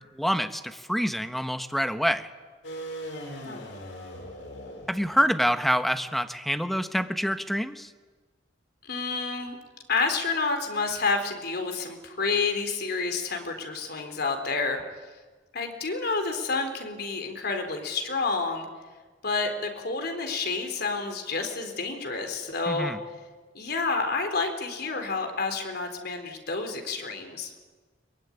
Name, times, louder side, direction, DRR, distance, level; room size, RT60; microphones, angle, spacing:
voice 1, 0.2-2.3 4.9-7.9 22.7-23.0, equal, ahead, 8 dB, 1.2 m, -26 dB
sound 1, 2.6-5.3, equal, 85° left, 6.1 m, -39 dB
voice 2, 8.8-9.6 9.9-14.8 15.5-18.7 19.2-23.0 23.5-27.5, left 4 dB, 60° left, 5 dB, 3.9 m, -29 dB
23.0 x 22.5 x 10.0 m, 1.4 s
head